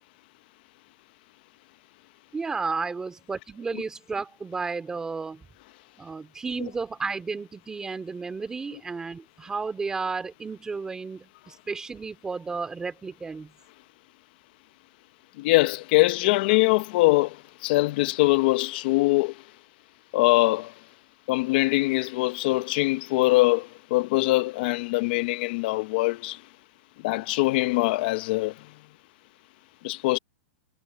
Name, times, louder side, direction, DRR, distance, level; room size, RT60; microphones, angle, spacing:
voice 1, 2.3-5.5 6.0-13.5, right 4 dB, 10° right, 2.4 m, -33 dB
voice 2, 15.4-19.4 20.1-20.7 21.3-26.4 27.0-28.5 29.8-30.2, left 20 dB, 40° left, 0.8 m, -23 dB
supercardioid pair, 165°, 7 cm